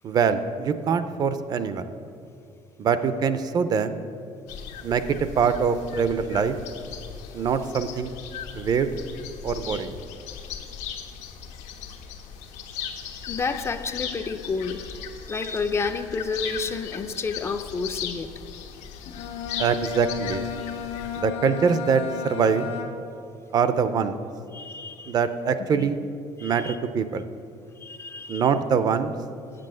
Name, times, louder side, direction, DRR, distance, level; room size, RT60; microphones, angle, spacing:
voice 1, 0.0-1.8 2.8-4.0 4.8-5.0 5.4-6.6 7.3-8.1 8.5-9.0 9.4-9.9 19.6-20.4 21.2-22.7 23.5-24.2 25.1-26.0 26.4-27.2 28.3-29.1, right 6 dB, 35° right, 11 dB, 0.5 m, -23 dB
sound 1, 4.5-21.2, left 8 dB, 90° left, 1.2 m, -38 dB
voice 2, 12.8-14.8 15.3-18.3 24.5-25.2 25.7-25.9 26.4-26.8 27.8-28.5, left 4 dB, 25° left, 8 dB, 0.4 m, -30 dB
Bowed string instrument, 19.0-23.3, left 8 dB, 65° left, 1.2 m, -34 dB
8.6 x 7.6 x 7.6 m, 2.5 s
cardioid pair, 170°, 12 cm